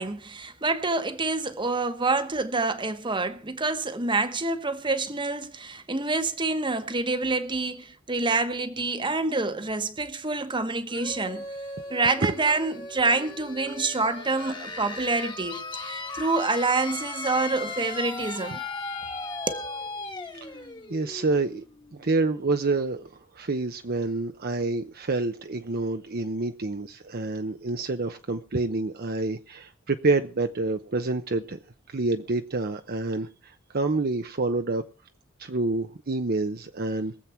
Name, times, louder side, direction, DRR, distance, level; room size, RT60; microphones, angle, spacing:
voice 1, 0.0-11.5 11.9-18.6 19.5-19.7, right 3 dB, 25° right, 1.2 m, -27 dB
sound 1, 10.9-22.4, left 3 dB, 20° left, 1.5 m, -37 dB
voice 2, 20.9-21.6 21.9-31.6 31.9-34.8 35.4-37.2, right 3 dB, 50° right, 0.8 m, -28 dB
23.0 x 7.6 x 4.4 m
head